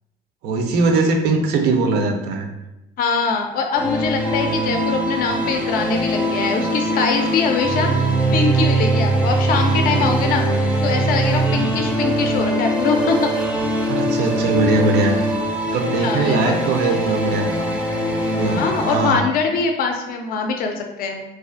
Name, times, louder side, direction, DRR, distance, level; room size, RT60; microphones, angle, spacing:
voice 1, 0.4-2.5 9.9-10.1 13.9-15.2 15.7-17.5 18.1-19.2, right 3 dB, 75° right, 4 dB, 0.4 m, -20 dB
voice 2, 3.0-13.3 16.0-17.0 18.4-21.2, left 5 dB, 60° left, 4 dB, 0.4 m, -23 dB
sound 1, 3.7-19.1, right 1 dB, 5° right, 0.4 m, -21 dB
2.4 x 2.3 x 2.4 m, 0.95 s
cardioid pair, 110°, 17 cm